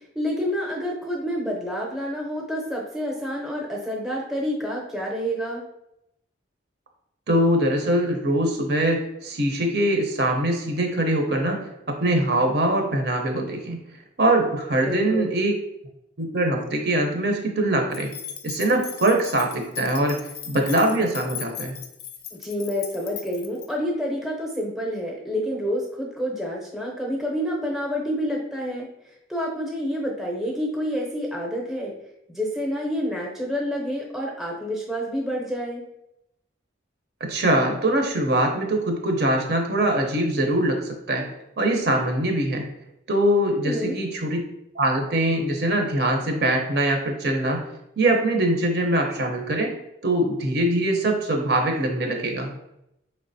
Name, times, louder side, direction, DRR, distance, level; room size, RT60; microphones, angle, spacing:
voice 1, 0.1-5.6 14.8-15.4 22.3-31.9 32.3-35.8 43.6-44.0, equal, ahead, -3 dB, 0.6 m, -28 dB
voice 2, 7.3-13.8 14.2-15.5 16.2-18.1 18.4-20.2 20.5-21.8 37.2-41.3 41.6-42.7 43.1-44.4 44.7-47.6 48.0-49.7 50.0-52.5, right 1 dB, 55° right, 3 dB, 0.7 m, -23 dB
sound 1, 17.9-23.7, left 9 dB, 50° left, 0.4 m, -38 dB
4.6 x 3.2 x 2.6 m, 0.83 s
head